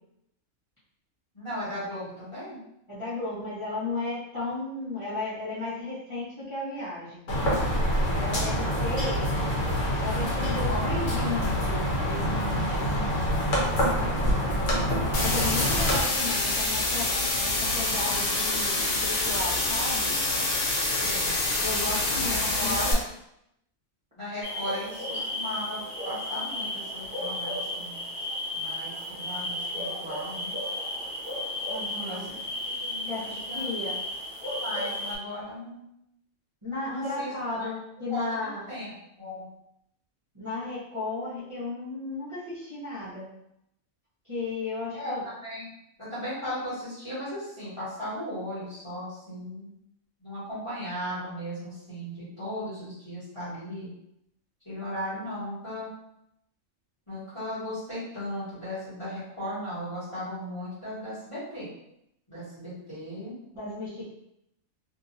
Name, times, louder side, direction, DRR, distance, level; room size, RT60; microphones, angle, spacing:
voice 1, 1.3-2.6 8.6-8.9 10.3-10.8 12.5-12.8 21.0-21.4 22.1-22.9 24.2-28.0 28.5-30.5 32.0-33.1 33.4-33.7 34.4-35.8 36.8-37.7 38.1-38.4 38.7-38.9 39.2-39.5 44.9-45.7 46.0-49.7 50.2-53.9 54.6-55.9 57.1-61.7 62.3-63.3, equal, 25° left, -11 dB, 1.4 m, -37 dB
voice 2, 2.9-7.3 8.1-9.3 10.0-13.1 13.8-14.7 15.2-17.1 17.4-20.1 21.6-23.0 31.7-32.2 33.1-33.9 36.6-38.7 40.3-43.3 44.3-45.2 63.5-64.1, left 2 dB, 25° right, -12 dB, 0.9 m, -34 dB
sound 1, 7.3-16.0, equal, 65° left, 1.2 m, -26 dB
sound 2, 15.1-22.9, left 2 dB, 85° left, 1.1 m, -26 dB
sound 3, 24.4-35.2, left 1 dB, 45° left, 1.2 m, -34 dB
2.8 x 2.6 x 2.6 m, 0.80 s
omnidirectional pair, 1.4 m